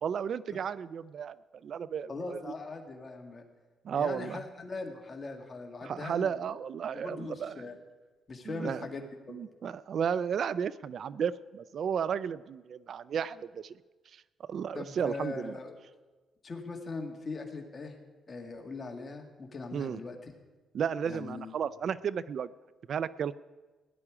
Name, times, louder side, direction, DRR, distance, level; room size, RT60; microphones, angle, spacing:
voice 1, 0.0-1.4 1.6-2.4 3.8-4.4 5.8-7.5 8.5-8.8 9.3-13.8 14.1-15.5 19.7-20.0 20.7-22.5 22.9-23.3, right 7 dB, 60° right, 18 dB, 0.3 m, -33 dB
voice 2, 2.1-3.4 3.9-6.3 6.9-7.8 8.3-9.4 14.7-15.8 16.4-18.0 18.3-20.3 21.0-21.6, left 3 dB, 35° left, 3 dB, 2.0 m, -40 dB
17.0 x 11.0 x 4.9 m, 1.3 s
cardioid pair, 90°, 0 cm